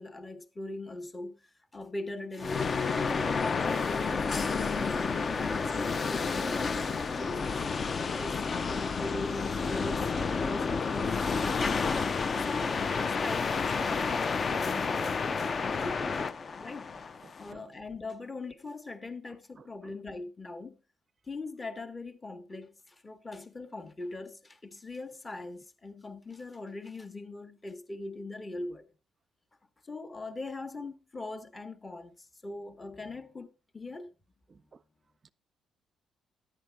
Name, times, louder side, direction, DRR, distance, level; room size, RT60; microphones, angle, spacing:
voice 1, 0.0-1.4 1.7-3.5 3.8-6.9 7.1-7.5 8.2-11.8 12.4-16.2 16.5-16.9 17.4-20.8 21.2-28.9 29.8-34.1, left 2 dB, 25° left, 1.0 m, -41 dB
sound 1, 2.4-17.5, left 5 dB, 40° left, 0.5 m, -30 dB
voice 2, 17.2-17.7 19.6-19.9 34.5-34.8 35.2-35.3, right 5 dB, 40° right, 0.5 m, -55 dB
11.0 x 8.7 x 3.3 m
cardioid pair, 90°, 0 cm